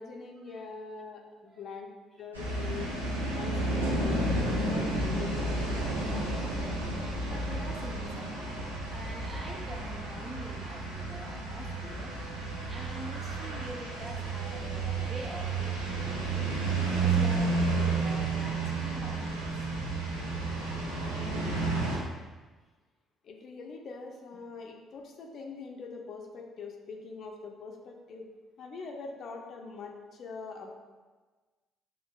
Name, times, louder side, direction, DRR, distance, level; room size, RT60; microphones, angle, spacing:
voice 1, 0.0-1.9 2.2-2.9 3.4-5.7 23.2-28.3 28.6-30.7, left 4 dB, 50° left, 1 dB, 0.6 m, -43 dB
sound 1, 2.3-22.0, right 2 dB, 90° right, 0.6 m, -31 dB
voice 2, 7.0-12.1 12.6-19.6, right 1 dB, 35° right, -1 dB, 0.8 m, -45 dB
7.1 x 2.5 x 2.3 m, 1.3 s
figure-of-eight pair, 45°, 0 cm